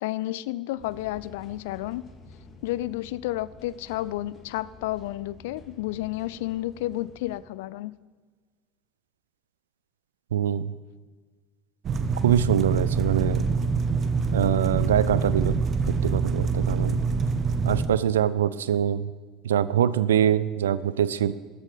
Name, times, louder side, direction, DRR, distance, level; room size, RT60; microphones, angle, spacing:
voice 1, 0.0-2.0 2.6-7.9, left 16 dB, 65° left, 19 dB, 0.4 m, -31 dB
sound 1, 0.8-7.4, left 2 dB, 35° left, 2.1 m, -50 dB
voice 2, 10.3-10.7 12.2-13.4 14.3-17.0 17.7-19.1 19.4-21.3, right 9 dB, 75° right, 17 dB, 0.4 m, -24 dB
sound 2, 11.8-17.9, right 4 dB, 40° right, 1.0 m, -25 dB
13.5 x 9.1 x 5.0 m, 1.4 s
figure-of-eight pair, 70°, 0 cm